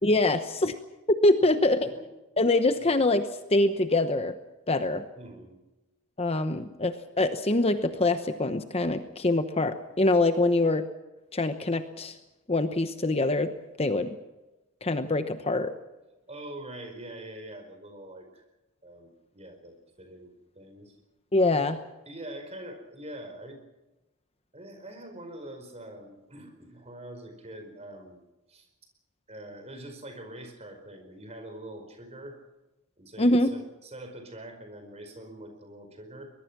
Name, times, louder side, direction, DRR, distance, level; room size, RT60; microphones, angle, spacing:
voice 1, 0.0-0.8 1.1-1.9 2.4-4.3 4.7-5.0 6.2-10.9 11.3-12.2 12.5-13.5 13.8-14.2 14.8-15.7 21.3-21.8 33.2-33.5, left 2 dB, 25° left, 9 dB, 0.9 m, -24 dB
voice 2, 5.1-5.6 16.3-18.4 18.8-20.9 21.5-21.6 22.0-23.6 24.5-28.2 28.5-28.7 29.3-32.4 33.0-36.3, right 1 dB, 30° right, 6 dB, 4.8 m, -44 dB
23.0 x 21.5 x 6.0 m, 1.0 s
head